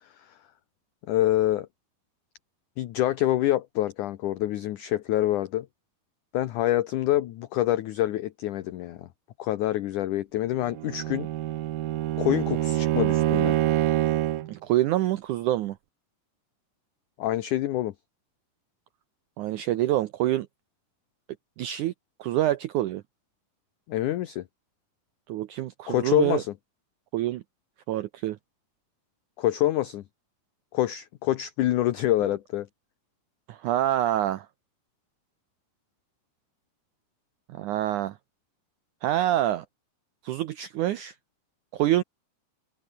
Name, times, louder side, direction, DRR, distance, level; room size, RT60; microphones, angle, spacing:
voice 1, 1.1-1.7 2.8-5.7 6.3-9.1 9.4-11.3 12.2-13.6 17.2-17.9 23.9-24.4 25.9-26.5 29.4-30.0 30.7-32.7, left 14 dB, 70° left, 2.1 m, -26 dB
Bowed string instrument, 10.6-14.5, right 14 dB, 70° right, 2.7 m, -26 dB
voice 2, 14.5-15.8 19.4-20.5 21.6-21.9 22.2-23.0 25.3-26.4 27.1-27.4 27.9-28.4 33.5-34.5 37.5-38.2 39.0-39.6 40.2-41.1 41.7-42.0, right 13 dB, 85° right, 1.7 m, -26 dB
omnidirectional pair, 4.5 m